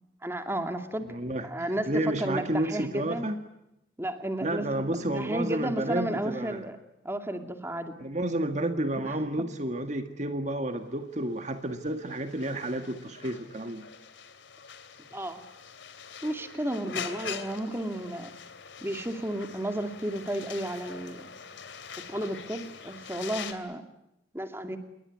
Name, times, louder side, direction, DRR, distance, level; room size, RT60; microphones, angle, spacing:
voice 1, 0.2-1.1 1.4-1.9 2.2-3.2 4.0-6.8 7.0-7.9 15.1-15.4 16.2-18.3 18.8-21.2 22.1-23.9 24.3-24.8, right 1 dB, 15° right, 7 dB, 2.4 m, -33 dB
voice 2, 1.1-3.4 4.4-6.7 8.0-13.8, right 1 dB, 40° right, 7 dB, 1.8 m, -31 dB
sound 1, 11.2-23.5, left 6 dB, 80° left, 3.0 m, -43 dB
27.5 x 22.5 x 9.5 m, 0.86 s
head